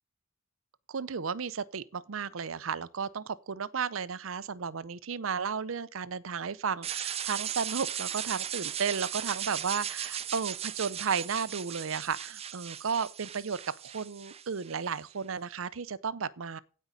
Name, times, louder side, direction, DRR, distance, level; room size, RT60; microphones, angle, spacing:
voice 1, 0.9-16.6, right 6 dB, 75° right, 0.6 m, -34 dB
sound 1, 6.8-14.9, right 10 dB, 30° right, 0.5 m, -37 dB
16.5 x 5.5 x 3.8 m
head